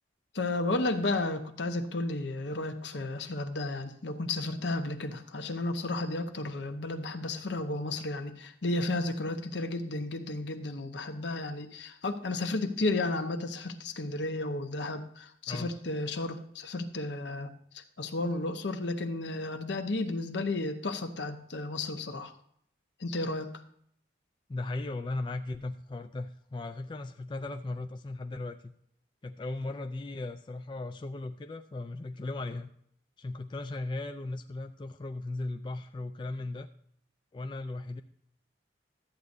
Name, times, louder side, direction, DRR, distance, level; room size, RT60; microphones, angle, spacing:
voice 1, 0.3-22.3 23.0-23.6, left 2 dB, 75° left, 8 dB, 0.9 m, -33 dB
voice 2, 24.5-28.7 29.2-32.7 33.2-36.7 37.3-38.0, left 2 dB, 25° left, 7 dB, 0.3 m, -37 dB
13.0 x 8.3 x 2.6 m, 0.67 s
head